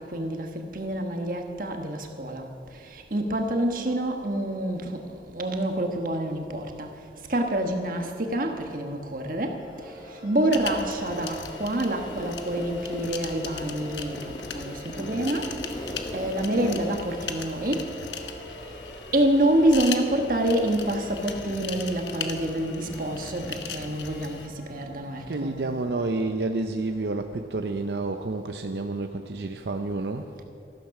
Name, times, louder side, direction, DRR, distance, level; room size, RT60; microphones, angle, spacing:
voice 1, 0.0-2.5 2.8-6.9 7.3-9.9 10.2-15.5 16.1-17.9 19.1-25.6, right 1 dB, 50° right, 4 dB, 1.3 m, -27 dB
sound 1, 8.9-27.5, equal, 65° left, 3.6 m, -45 dB
sound 2, 10.5-24.5, left 6 dB, 90° left, 1.1 m, -39 dB
Zipper (clothing), 12.1-13.1 13.4-18.1, left 1 dB, 20° left, 0.9 m, -38 dB
voice 2, 25.3-30.3, right 2 dB, 70° right, 6 dB, 0.6 m, -29 dB
13.5 x 13.0 x 5.9 m, 2.5 s
head